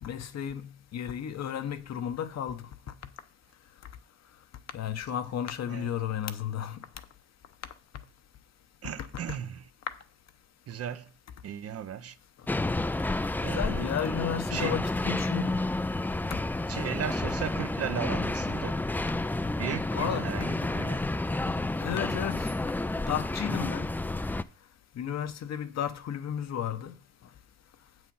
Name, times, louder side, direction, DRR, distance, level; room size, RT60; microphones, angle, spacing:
voice 1, 0.0-0.6 0.9-2.6 4.7-6.8 13.5-15.6 19.9-20.3 21.8-22.5 23.1-23.9 25.0-26.9, left 9 dB, 60° left, 0.9 m, -33 dB
voice 2, 8.8-9.7 10.7-11.1 11.4-12.2 13.4-13.9 14.5-14.8 16.7-18.8 19.6-21.2, right 9 dB, 50° right, 0.7 m, -36 dB
sound 1, 12.5-24.4, left 2 dB, 5° left, 0.3 m, -30 dB
7.5 x 6.4 x 5.4 m
cardioid pair, 90°, 30 cm